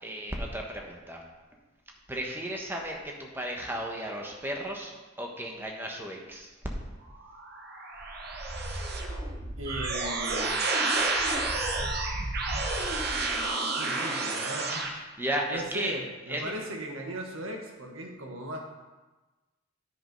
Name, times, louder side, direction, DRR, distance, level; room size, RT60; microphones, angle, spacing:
voice 1, 0.0-1.2 2.1-6.5 15.2-16.0 16.3-16.4, right 1 dB, 10° right, 0 dB, 1.2 m, -34 dB
sound 1, 7.2-14.9, right 2 dB, 50° right, 1.1 m, -30 dB
voice 2, 9.6-10.6 13.7-14.9 15.5-18.6, right 1 dB, 80° right, 1 dB, 1.5 m, -37 dB
9.6 x 5.4 x 5.3 m, 1.2 s
head